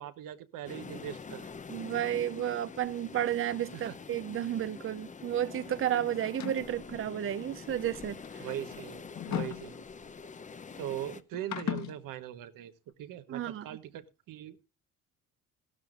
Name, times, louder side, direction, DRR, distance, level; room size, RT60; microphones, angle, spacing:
voice 1, 0.0-1.5 3.7-3.9 8.4-9.9 10.8-12.7 13.0-14.7, right 12 dB, 80° right, 1.3 m, -41 dB
sound 1, 0.6-11.2, left 5 dB, 25° left, 0.7 m, -46 dB
voice 2, 1.7-8.5 13.3-13.7, right 11 dB, 40° right, 0.7 m, -32 dB
sound 2, 6.2-6.8 7.8-10.2 11.3-12.0, left 10 dB, 55° left, 1.5 m, -38 dB
15.5 x 12.5 x 2.5 m
cardioid pair, 100°, 33 cm